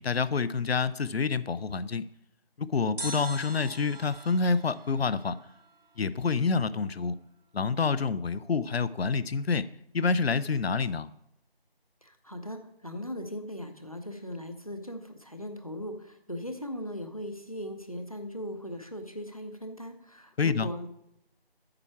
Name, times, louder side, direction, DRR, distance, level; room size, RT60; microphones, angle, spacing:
voice 1, 0.0-2.1 2.6-5.4 6.0-7.2 7.5-9.7 9.9-11.1 20.4-20.7, left 4 dB, 85° left, 16 dB, 0.6 m, -27 dB
sound 1, 3.0-6.1 6.3-6.4, right 1 dB, 70° right, 2.9 m, -43 dB
voice 2, 12.0-20.9, equal, 35° left, 7 dB, 0.7 m, -39 dB
8.8 x 5.7 x 4.6 m, 0.80 s
figure-of-eight pair, 180°, 30 cm